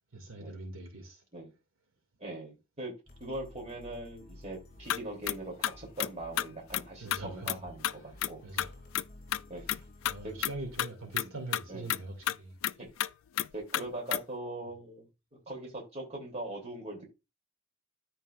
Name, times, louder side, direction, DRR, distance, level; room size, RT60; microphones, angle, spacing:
voice 1, 0.1-1.2 7.0-7.6 8.4-8.7 9.6-12.5, right 2 dB, 65° right, 2.5 m, -43 dB
voice 2, 2.2-2.9 3.2-8.4 9.5-9.6 10.2-10.3 11.7-11.8 12.8-12.9 13.5-15.1 15.5-17.0, right 2 dB, 30° right, 3.1 m, -41 dB
sound 1, 3.1-10.8, left 1 dB, 40° left, 2.5 m, -53 dB
sound 2, 4.9-5.0 5.3-5.4 5.6-6.1 6.4-6.5 6.7-6.8 7.1-7.2 7.5-7.6 7.8-7.9 8.2-8.3 8.6-9.0 9.3-9.4 9.7-9.8 10.0-10.1 10.4-10.5 10.8-10.9 11.2-11.3 11.5-11.6 11.9-12.0 12.3-12.4 12.6-12.7 13.0-13.1 13.4-13.5 13.7-13.8 14.1-14.2, left 12 dB, 65° left, 0.3 m, -30 dB
13.0 x 4.7 x 2.5 m
head